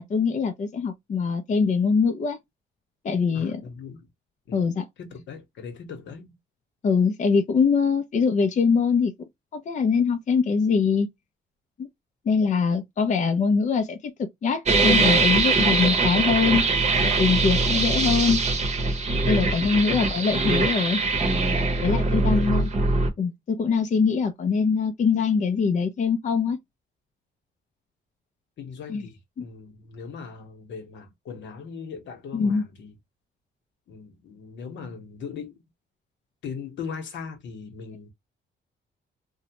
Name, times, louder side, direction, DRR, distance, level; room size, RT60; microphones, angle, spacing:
voice 1, 0.0-2.4 3.0-3.6 4.5-4.9 6.8-9.1 9.5-11.1 11.8-11.9 12.3-16.6 17.0-18.4 19.2-21.0 21.8-22.7 23.2-26.6 28.9-29.1 29.4-29.5 32.3-32.6, left 5 dB, 40° left, 0.5 m, -23 dB
voice 2, 3.3-4.1 4.5-4.6 5.0-6.4 19.9-20.2 21.7-22.5 28.6-32.9 33.9-35.6 36.4-38.1, left 5 dB, 70° left, 1.0 m, -39 dB
sound 1, 14.7-23.1, right 3 dB, 35° right, 0.8 m, -22 dB
2.7 x 2.1 x 2.8 m
cardioid pair, 90°, 20 cm